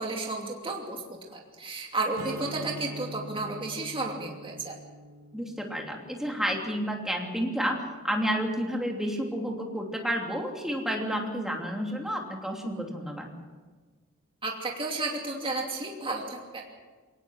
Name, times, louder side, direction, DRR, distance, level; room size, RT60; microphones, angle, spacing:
voice 1, 0.0-4.8 14.4-16.6, right 2 dB, 25° right, 0 dB, 2.7 m, -33 dB
Strum, 2.2-7.5, right 1 dB, 85° right, 3.0 m, -44 dB
voice 2, 5.3-13.3, equal, ahead, 0 dB, 3.0 m, -30 dB
22.5 x 18.5 x 6.4 m, 1.4 s
head